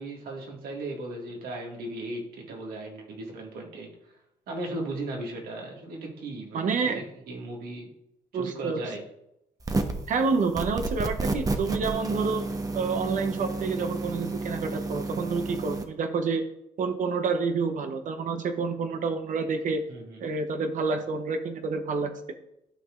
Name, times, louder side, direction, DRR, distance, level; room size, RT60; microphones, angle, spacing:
voice 1, 0.0-3.9 4.5-7.9 8.3-9.0 19.9-20.2, right 2 dB, 75° right, 0 dB, 1.9 m, -37 dB
voice 2, 6.5-7.0 8.3-8.8 10.1-12.5 12.7-16.4 16.8-19.8 20.2-22.1, right 4 dB, 60° right, 6 dB, 0.8 m, -28 dB
sound 1, 9.6-10.1 10.5-15.8, right 3 dB, 25° right, 0.9 m, -31 dB
12.0 x 4.7 x 2.5 m, 0.82 s
supercardioid pair, 70°, 15 cm